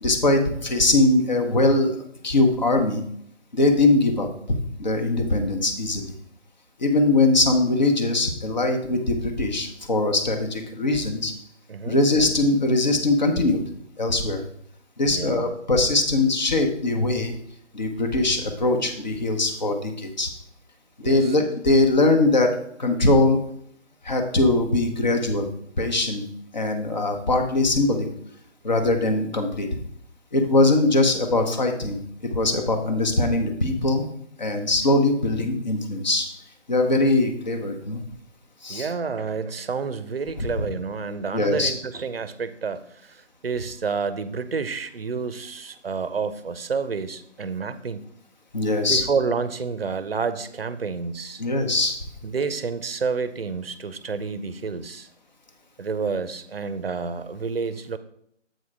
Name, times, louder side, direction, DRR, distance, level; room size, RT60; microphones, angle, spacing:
voice 1, 0.0-2.0 2.2-3.0 3.5-6.1 6.8-11.3 11.9-13.6 14.0-14.4 15.0-17.4 17.7-20.3 21.0-23.4 24.0-25.5 25.8-26.3 26.5-28.1 28.6-29.7 30.3-34.1 34.4-36.3 36.7-38.0 38.6-38.9 41.1-41.7 48.5-49.0 51.4-52.0, left 2 dB, 35° left, 4 dB, 1.1 m, -21 dB
voice 2, 15.1-15.5 21.0-21.3 38.7-48.1 48.9-51.4 52.2-55.1 55.8-58.0, right 5 dB, 50° right, 13 dB, 0.6 m, -29 dB
7.9 x 4.7 x 4.8 m, 0.69 s
figure-of-eight pair, 155°, 37 cm